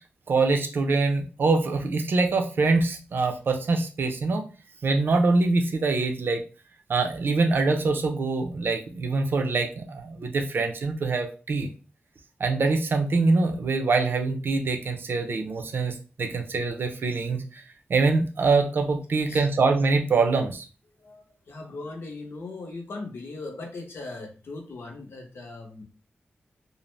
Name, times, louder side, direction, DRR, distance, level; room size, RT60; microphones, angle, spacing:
voice 1, 0.3-4.4 4.8-6.4 6.9-11.7 12.4-17.6 17.9-20.6, right 3 dB, 65° right, 4 dB, 0.5 m, -24 dB
voice 2, 21.0-25.8, left 3 dB, 80° left, 2 dB, 0.7 m, -39 dB
2.5 x 2.0 x 3.1 m, 0.35 s
wide cardioid pair, 90°, 4 cm